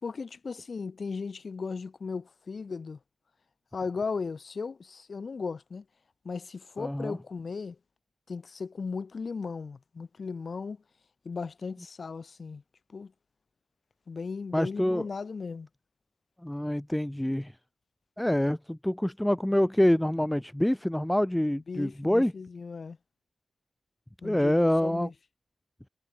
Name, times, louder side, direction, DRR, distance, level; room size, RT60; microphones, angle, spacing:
voice 1, 0.0-3.0 3.7-5.8 6.2-7.8 8.3-10.8 11.2-12.6 12.9-13.1 14.1-15.7 21.7-23.0 24.2-25.1, left 4 dB, 40° left, 2.9 m, -36 dB
voice 2, 6.8-7.2 14.5-15.0 16.4-17.5 18.2-22.3 24.2-25.1, left 1 dB, 5° left, 0.6 m, -26 dB
wide cardioid pair, 130°, 0 cm